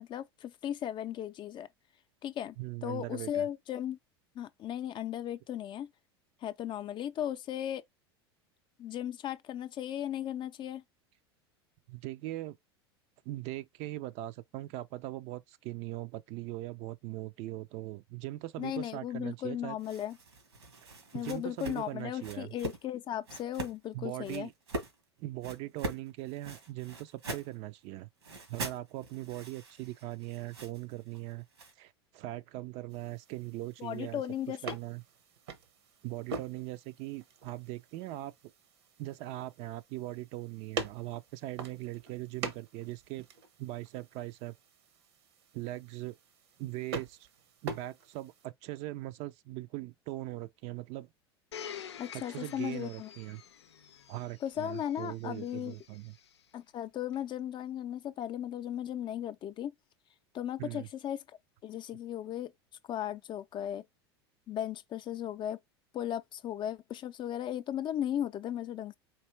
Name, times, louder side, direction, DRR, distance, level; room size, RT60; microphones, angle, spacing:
voice 1, 0.0-1.7 2.2-2.6 2.8-4.0 4.3-5.9 6.4-7.8 8.8-10.8 18.6-20.2 21.1-24.5 33.8-34.8 52.0-53.1 54.4-55.8 56.5-59.7 60.3-61.2 61.6-62.5 62.9-63.8 64.5-65.6 65.9-69.0, left 11 dB, 35° left, 0.5 m, -36 dB
voice 2, 2.6-3.5 11.9-12.6 13.3-19.8 20.8-22.5 23.9-24.5 25.2-28.1 28.5-31.5 31.8-35.0 36.0-38.3 39.0-43.3 43.6-44.5 45.5-46.2 46.6-47.2 47.6-51.1 52.1-53.4 54.1-56.1 60.6-60.9, right 16 dB, 50° right, 0.5 m, -40 dB
sound 1, 19.8-22.8 23.3-23.8 24.2-25.0 25.4-27.6 28.2-31.7, right 2 dB, 90° right, 1.7 m, -42 dB
sound 2, 32.9-48.5, right 4 dB, 70° right, 1.0 m, -45 dB
Domestic sounds home sounds, 51.5-56.4 57.1-57.2, left 8 dB, 85° left, 0.5 m, -48 dB
4.5 x 2.6 x 3.2 m
hypercardioid pair, 85°, 14 cm